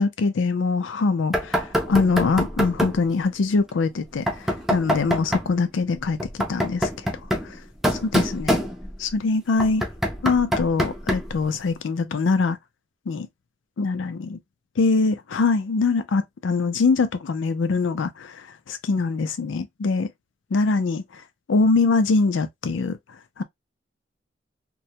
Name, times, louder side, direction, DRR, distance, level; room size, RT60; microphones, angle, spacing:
voice 1, 0.0-4.3 4.7-6.9 7.4-7.6 8.0-8.6 9.0-9.8 10.2-12.6 13.1-13.3 13.8-14.4 14.8-20.1 20.5-21.0 21.5-23.0 23.4-23.5, left 4 dB, 80° left, 0.4 m, -23 dB
Knock, 1.3-3.1 4.3-5.5 6.2-9.1 9.6-11.4, equal, ahead, 0.4 m, -25 dB
2.2 x 2.1 x 2.7 m
head